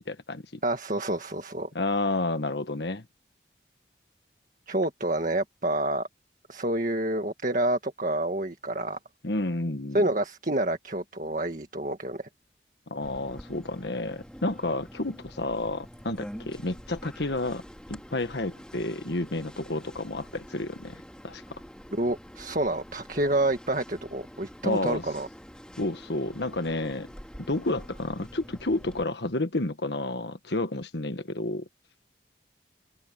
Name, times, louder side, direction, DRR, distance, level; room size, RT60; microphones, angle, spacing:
voice 1, 0.0-0.6 1.7-3.0 9.2-10.0 12.9-17.6 17.9-21.6 24.6-25.0 25.8-27.1 27.5-31.6, left 2 dB, 75° left, 1.5 m, -30 dB
voice 2, 0.6-1.7 4.7-6.1 6.5-9.0 9.9-12.3 21.9-25.3, right 1 dB, 45° right, 1.9 m, -28 dB
sound 1, 13.0-29.0, equal, 5° left, 4.2 m, -46 dB
open air
head